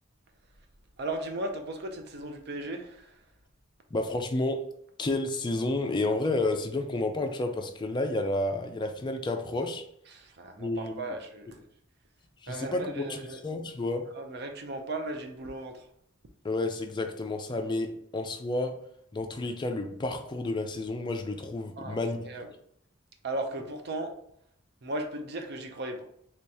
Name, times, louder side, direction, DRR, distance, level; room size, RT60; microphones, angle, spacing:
voice 1, 1.0-3.2 10.1-11.7 12.5-13.4 14.1-15.9 21.8-22.0 22.2-22.5 23.2-24.1 24.8-26.0, right 2 dB, 55° right, 5 dB, 0.5 m, -36 dB
voice 2, 3.9-4.6 5.0-9.8 10.6-11.0 12.4-13.2 13.4-14.1 16.4-18.8 19.1-22.2, left 2 dB, 20° left, 5 dB, 0.4 m, -30 dB
3.0 x 2.8 x 3.4 m, 0.69 s
head